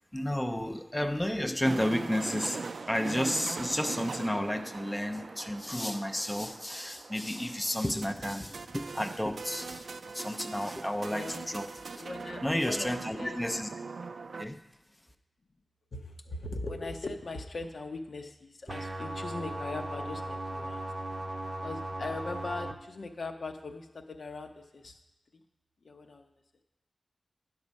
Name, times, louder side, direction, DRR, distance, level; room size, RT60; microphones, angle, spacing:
voice 1, 0.1-2.6 2.9-11.6 12.4-13.7 14.4-14.6, left 1 dB, 15° left, 6 dB, 0.5 m, -32 dB
sound 1, 1.6-14.4, right 4 dB, 75° right, 0.4 m, -41 dB
voice 2, 11.0-11.6 11.9-13.4 15.9-20.8 21.6-25.0 25.3-25.4 25.8-26.4, left 3 dB, 75° left, 4 dB, 0.8 m, -40 dB
sound 2, 18.7-22.7, right 1 dB, 40° right, 0.6 m, -37 dB
9.6 x 6.0 x 5.3 m, 0.98 s
wide cardioid pair, 65°, 0 cm